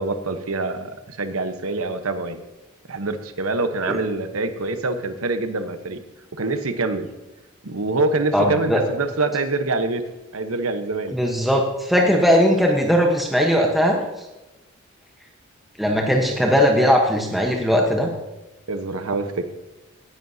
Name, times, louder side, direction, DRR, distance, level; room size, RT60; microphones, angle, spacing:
voice 1, 0.0-2.4 2.9-6.0 6.3-7.1 7.6-10.0 10.3-11.1 12.0-12.2 16.3-16.4 18.7-19.5, right 3 dB, 90° right, 9 dB, 1.1 m, -25 dB
voice 2, 8.3-8.8 11.1-14.0 15.8-18.1, equal, ahead, 0 dB, 1.1 m, -19 dB
17.5 x 10.5 x 2.8 m, 1.1 s
head